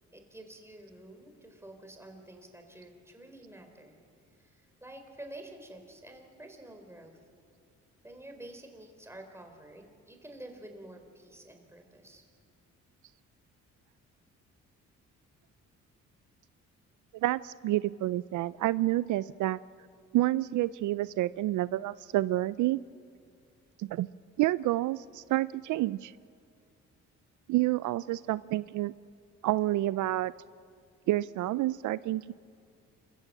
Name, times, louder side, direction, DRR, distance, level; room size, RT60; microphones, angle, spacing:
voice 1, 0.1-4.0 4.4-7.2 8.0-12.2, right 1 dB, 10° right, 4 dB, 3.9 m, -49 dB
voice 2, 17.1-19.6 20.1-22.8 23.8-24.1 24.4-26.1 27.5-28.9 29.4-30.3 31.1-32.3, right 16 dB, 75° right, 18 dB, 0.5 m, -29 dB
28.0 x 15.5 x 7.4 m, 2.4 s
cardioid pair, 90°, 30 cm